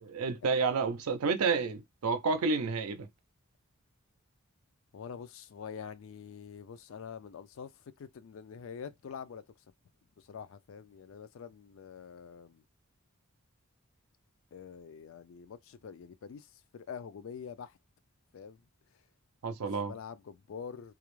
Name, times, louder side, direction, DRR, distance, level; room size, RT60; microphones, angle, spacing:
voice 1, 0.0-3.1 19.4-19.9, right 4 dB, 85° right, 0.5 m, -30 dB
voice 2, 4.9-9.6 10.2-12.6 14.5-17.8 18.3-18.7 19.6-20.9, left 7 dB, 65° left, 0.3 m, -46 dB
2.3 x 2.0 x 3.0 m
head